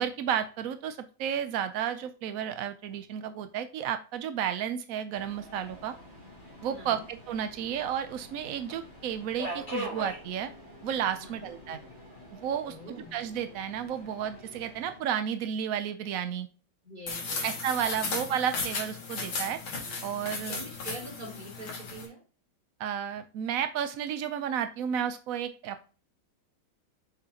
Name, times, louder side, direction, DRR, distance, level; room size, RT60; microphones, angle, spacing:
voice 1, 0.0-5.9 6.6-10.5 10.8-11.8 12.3-16.5 17.4-19.6 20.0-20.6 22.8-25.9, right 9 dB, 80° right, 9 dB, 0.7 m, -32 dB
Subway metro underground, 5.1-15.0, equal, 20° left, 3.5 m, -44 dB
voice 2, 6.7-7.1 11.2-11.5 12.7-13.2 16.8-17.6 20.5-22.2, right 1 dB, 20° right, -3 dB, 3.3 m, -44 dB
sound 1, 17.1-22.1, left 3 dB, 90° left, 2.8 m, -35 dB
6.8 x 5.9 x 2.8 m, 0.35 s
omnidirectional pair, 2.2 m